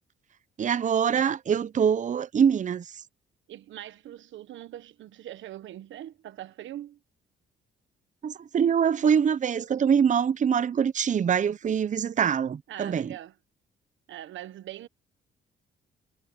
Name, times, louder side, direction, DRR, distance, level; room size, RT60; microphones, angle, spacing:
voice 1, 0.6-2.9 8.2-13.1, right 7 dB, 40° right, 0.7 m, -24 dB
voice 2, 3.5-7.0 12.7-13.3 14.1-14.9, right 12 dB, 75° right, 1.2 m, -42 dB
cardioid pair, 90°, 20 cm